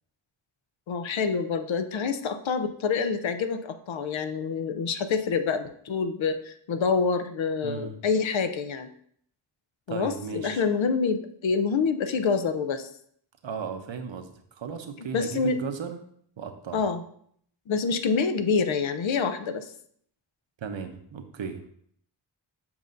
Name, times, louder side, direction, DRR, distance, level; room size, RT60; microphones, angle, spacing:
voice 1, 0.9-8.9 9.9-12.9 15.0-15.6 16.7-17.0 17.7-19.7, left 5 dB, 80° left, 9 dB, 0.6 m, -27 dB
voice 2, 7.6-8.0 9.9-10.6 13.4-16.0 16.4-16.8 20.6-21.7, right 6 dB, 80° right, 7 dB, 0.8 m, -36 dB
7.1 x 5.2 x 2.5 m, 0.65 s
wide cardioid pair, 70°, 45 cm